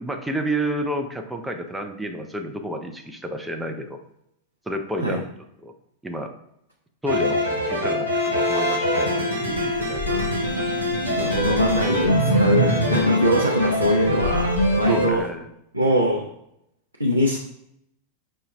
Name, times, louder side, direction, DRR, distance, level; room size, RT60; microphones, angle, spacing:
voice 1, 0.0-4.0 4.7-5.3 5.6-5.7 6.0-6.3 7.0-10.0 13.6-13.8 14.9-15.5, equal, 5° right, 3 dB, 0.5 m, -30 dB
sound 1, 7.1-15.1, equal, 90° left, 0.9 m, -22 dB
sound 2, 9.5-15.3, left 5 dB, 55° right, 0.9 m, -36 dB
voice 2, 10.0-10.5 11.2-14.5 14.8-15.2 15.7-16.3 17.0-17.4, equal, 85° right, -1 dB, 0.5 m, -23 dB
5.4 x 2.2 x 3.3 m, 0.79 s
figure-of-eight pair, 90°, 0 cm